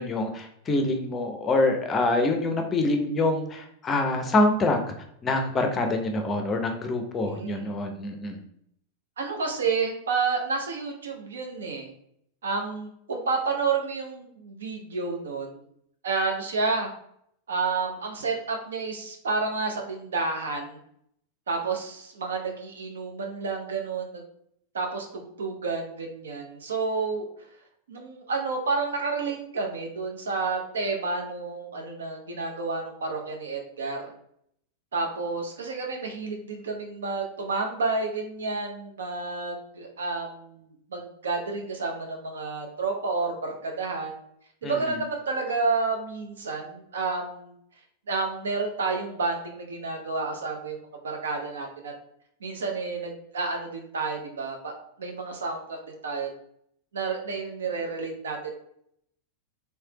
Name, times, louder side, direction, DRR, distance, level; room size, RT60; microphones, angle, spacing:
voice 1, 0.0-4.8 5.2-8.4 44.6-45.0, left 2 dB, 25° left, 5 dB, 0.5 m, -25 dB
voice 2, 7.2-7.7 9.2-11.9 12.4-15.6 16.0-16.9 17.5-20.8 21.5-24.1 24.7-27.3 27.9-34.1 34.9-44.1 44.6-47.5 48.1-50.8 51.0-51.9 52.4-54.7 55.0-56.3 56.9-58.5, right 4 dB, 65° right, 2 dB, 0.6 m, -30 dB
3.3 x 3.2 x 2.7 m, 0.71 s
figure-of-eight pair, 90°, 0 cm